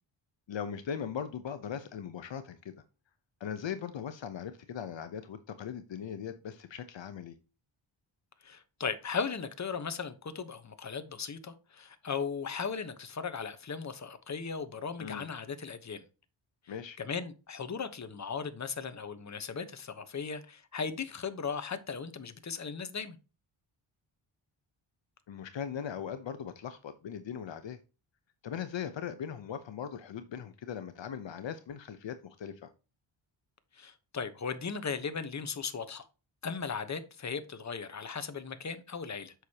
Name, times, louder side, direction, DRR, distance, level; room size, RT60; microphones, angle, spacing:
voice 1, 0.5-2.8 3.4-7.4 15.0-15.3 16.7-17.0 25.3-27.8 28.4-32.7, left 8 dB, 65° left, 0.9 m, -39 dB
voice 2, 8.4-16.0 17.0-23.2 33.8-36.0 36.4-39.3, left 5 dB, 35° left, 1.1 m, -37 dB
8.1 x 6.4 x 2.9 m
wide cardioid pair, 105°, 49 cm